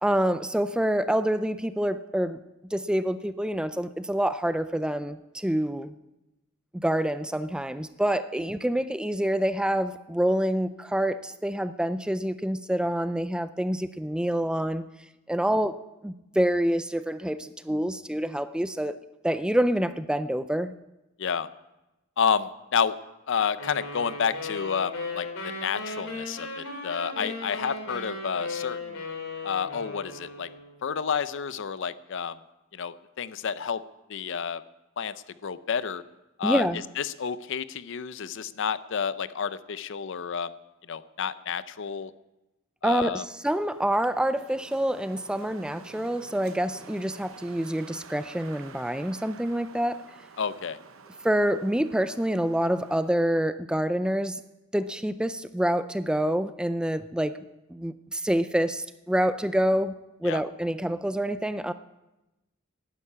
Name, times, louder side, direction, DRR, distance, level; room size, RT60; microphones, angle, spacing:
voice 1, 0.0-2.4 2.7-5.9 6.7-14.8 15.3-15.8 16.0-19.0 19.2-20.7 36.4-36.8 42.8-50.0 51.2-54.4 54.7-57.4 57.7-61.7, right 1 dB, 5° right, 12 dB, 0.4 m, -27 dB
voice 2, 22.2-23.0 23.3-29.0 29.4-30.5 30.8-32.4 32.7-33.8 34.1-34.6 35.0-35.1 35.4-36.0 36.4-36.7 37.0-40.5 40.9-42.1 42.8-43.2 50.4-50.8 60.2-60.4, left 6 dB, 60° left, 15 dB, 0.5 m, -30 dB
sound 1, 23.6-30.8, left 3 dB, 80° left, 2.9 m, -36 dB
Wind, 43.4-53.2, right 5 dB, 70° right, 0.9 m, -49 dB
11.5 x 10.0 x 8.4 m, 0.99 s
head